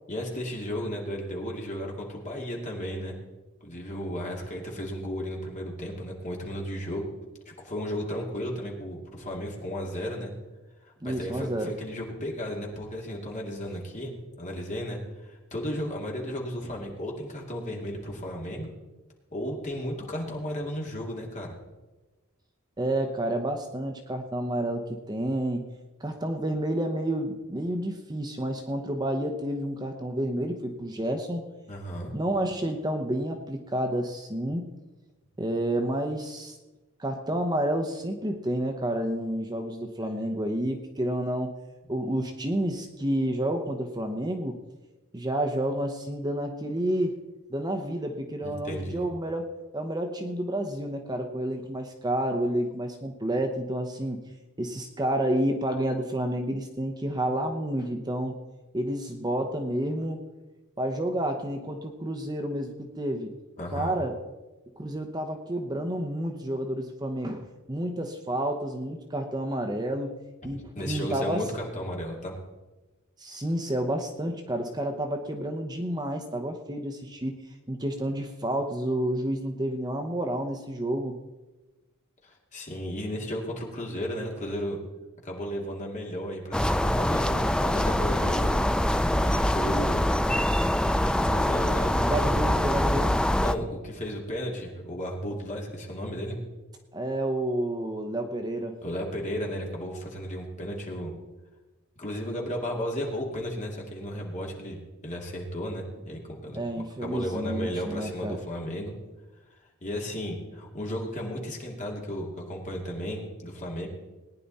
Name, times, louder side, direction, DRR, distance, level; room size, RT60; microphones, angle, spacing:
voice 1, 0.1-3.1 3.6-7.1 7.5-10.3 11.0-14.1 14.4-18.7 19.3-21.5 31.7-32.1 48.4-49.1 63.6-64.0 70.4-72.3 82.2-84.8 85.2-88.5 89.2-90.1 91.0-92.4 93.4-96.4 98.8-101.1 102.0-106.6 107.0-108.9 109.8-113.9, equal, 35° left, -1 dB, 2.5 m, -34 dB
voice 2, 11.0-11.7 22.8-25.6 26.0-31.4 32.1-34.7 35.4-36.6 37.0-41.6 41.9-44.6 45.1-47.2 47.5-54.2 54.6-58.4 58.7-60.2 60.8-63.3 63.7-64.2 64.8-71.5 73.2-77.4 77.7-81.2 92.0-93.2 96.9-98.8 106.5-108.4, right 1 dB, 20° right, 5 dB, 0.8 m, -30 dB
sound 1, 86.5-93.5, left 1 dB, 5° left, 0.3 m, -24 dB
18.5 x 10.0 x 4.2 m, 1.1 s
head